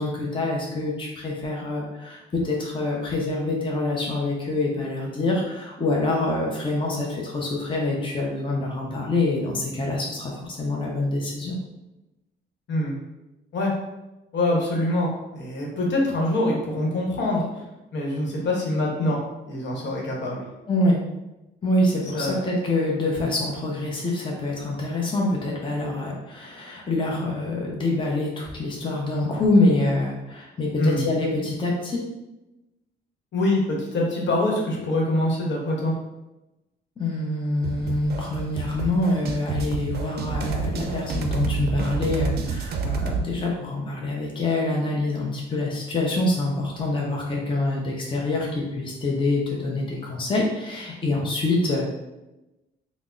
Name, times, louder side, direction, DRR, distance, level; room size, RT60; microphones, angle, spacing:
voice 1, 0.0-11.6 20.7-21.0 21.6-32.0 37.0-51.9, left 2 dB, 25° left, -2 dB, 0.7 m, -25 dB
voice 2, 14.3-17.4 17.9-19.2 19.5-20.4 22.1-22.4 30.8-31.0 33.3-35.9, left 1 dB, 65° left, -2 dB, 1.0 m, -24 dB
sound 1, 37.6-43.3, right 4 dB, 55° right, 0.5 m, -29 dB
3.4 x 2.0 x 3.7 m, 1.0 s
cardioid pair, 90°, 20 cm